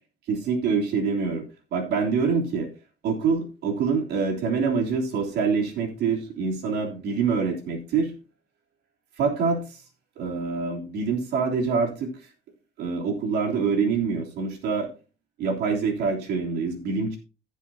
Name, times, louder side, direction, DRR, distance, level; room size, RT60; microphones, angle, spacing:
voice 1, 0.3-2.7 3.0-8.1 9.2-9.8 10.2-12.1 12.8-14.9 15.4-17.2, right 5 dB, 75° right, 1 dB, 3.3 m, -25 dB
16.0 x 7.3 x 2.8 m, 0.32 s
cardioid pair, 110°, 17 cm